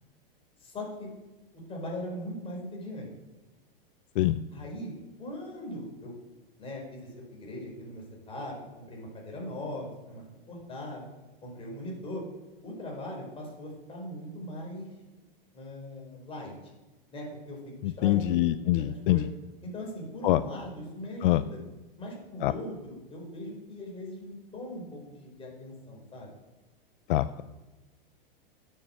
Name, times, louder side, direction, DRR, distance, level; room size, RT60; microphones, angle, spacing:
voice 1, 0.6-1.1 1.7-3.1 4.5-4.9 5.2-6.1 6.6-11.1 11.4-12.2 12.6-14.9 15.5-16.7 17.1-17.6 18.0-19.3 19.6-21.6 22.0-26.3, left 1 dB, 20° left, -1 dB, 4.6 m, -40 dB
voice 2, 17.8-19.2 20.2-20.4 21.2-21.4 22.4-22.5 27.1-27.4, left 15 dB, 65° left, 14 dB, 0.5 m, -24 dB
9.8 x 7.1 x 7.6 m, 1.1 s
hypercardioid pair, 135°, 29 cm